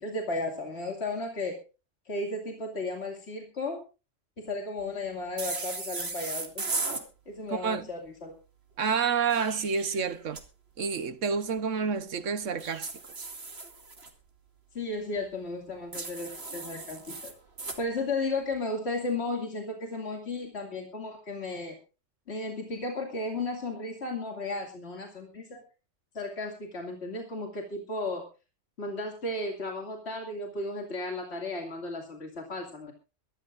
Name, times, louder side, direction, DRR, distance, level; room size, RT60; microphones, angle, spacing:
voice 1, 0.0-1.6 2.1-3.8 4.4-6.7 7.3-8.3 14.7-17.3 17.8-21.8 22.3-25.6 26.1-28.2 28.8-32.9, left 2 dB, 55° left, 2.7 m, -34 dB
sound 1, 5.4-7.0 9.1-10.4 12.6-14.1 15.9-17.8, right 3 dB, 55° right, 2.5 m, -36 dB
voice 2, 7.5-7.9 8.8-10.4 10.8-12.9 13.2-13.3, right 6 dB, 75° right, 1.4 m, -29 dB
23.0 x 13.0 x 2.5 m
omnidirectional pair, 1.3 m